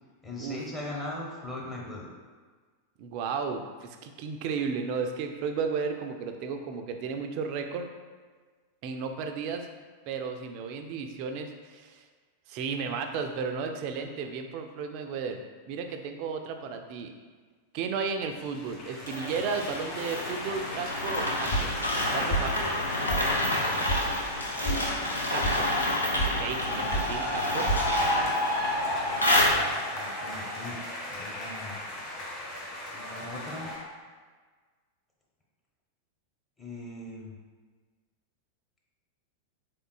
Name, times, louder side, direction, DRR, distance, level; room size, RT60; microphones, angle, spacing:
voice 1, 0.2-2.1 29.9-30.8 31.1-31.8 32.9-33.7 36.6-37.3, left 2 dB, 10° left, -4 dB, 0.7 m, -39 dB
voice 2, 3.0-7.9 8.8-9.7 10.1-12.0 12.5-15.4 15.7-17.1 17.7-21.7 22.1-22.6 25.3-25.7 26.2-27.7, right 5 dB, 45° right, 6 dB, 0.3 m, -34 dB
sound 1, 18.4-25.7 26.4-33.8, left 1 dB, 30° left, 1.5 m, -35 dB
sound 2, 19.1-30.0, left 1 dB, 80° left, 0.5 m, -29 dB
sound 3, 21.5-22.0 22.3-22.8 23.1-23.2 23.5-24.0 24.3-24.8 25.1-25.5 25.9-26.3 26.6-27.1 27.3-27.8, right 2 dB, 50° left, 0.8 m, -30 dB
3.7 x 3.6 x 2.3 m, 1.5 s
figure-of-eight pair, 90°, 0 cm